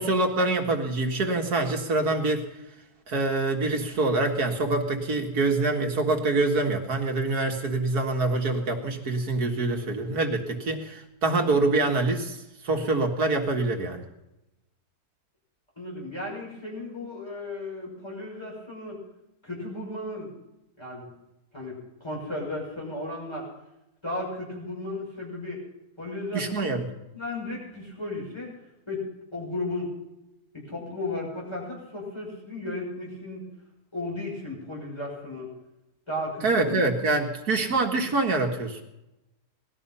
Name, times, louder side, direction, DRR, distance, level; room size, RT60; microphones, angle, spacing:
voice 1, 0.0-2.4 3.1-12.4 12.6-14.0 26.3-26.8 36.4-38.8, right 2 dB, 70° right, 3 dB, 2.4 m, -25 dB
voice 2, 15.8-19.0 19.4-20.3 20.8-21.1 21.5-23.5 24.0-25.6 26.0-26.7 27.1-28.5 28.9-29.9 30.5-33.5 33.9-35.5 36.1-36.8, left 2 dB, 15° left, -4 dB, 6.2 m, -35 dB
19.5 x 13.0 x 5.6 m, 0.93 s
omnidirectional pair, 1.7 m